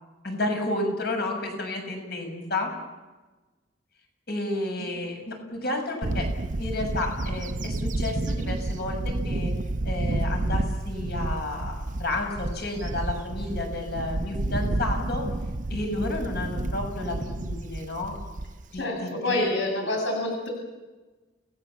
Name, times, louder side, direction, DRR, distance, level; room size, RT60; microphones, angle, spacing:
voice 1, 0.2-2.7 4.3-6.3 6.6-9.5 9.8-15.3 15.7-18.1 18.7-19.5, left 2 dB, 60° left, 3 dB, 6.5 m, -31 dB
Bird / Wind, 6.0-18.8, right 2 dB, 45° right, 0.7 m, -30 dB
voice 2, 18.7-20.5, left 1 dB, 90° left, 1 dB, 8.0 m, -27 dB
29.5 x 19.0 x 7.3 m, 1.2 s
head